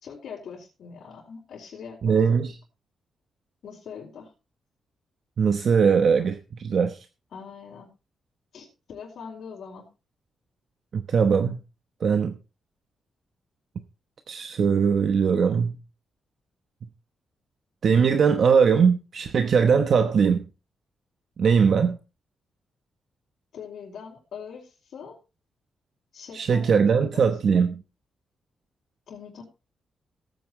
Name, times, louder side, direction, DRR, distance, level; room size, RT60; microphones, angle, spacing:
voice 1, 0.0-2.2 3.6-4.3 7.3-7.9 8.5-9.9 23.5-25.2 26.1-27.4 29.1-29.4, left 6 dB, 60° left, 4.3 m, -42 dB
voice 2, 2.0-2.6 5.4-7.0 10.9-11.6 12.0-12.4 14.3-15.8 17.8-20.4 21.4-22.0 26.3-27.8, right 6 dB, 45° right, 1.0 m, -20 dB
17.5 x 9.3 x 3.2 m
wide cardioid pair, 170°, 0 cm